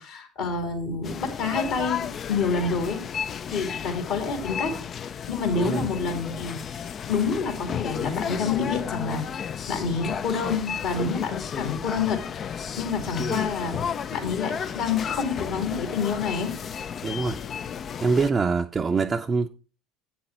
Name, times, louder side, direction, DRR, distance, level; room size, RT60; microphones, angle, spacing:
voice 1, 0.0-3.0 3.5-4.7 5.0-16.5, left 5 dB, 65° left, 2.8 m, -28 dB
sound 1, 1.0-18.3, left 7 dB, 40° left, 0.4 m, -33 dB
voice 2, 17.0-17.4 18.0-19.5, right 4 dB, 30° right, 0.5 m, -24 dB
8.5 x 6.2 x 4.5 m
hypercardioid pair, 70°, 0 cm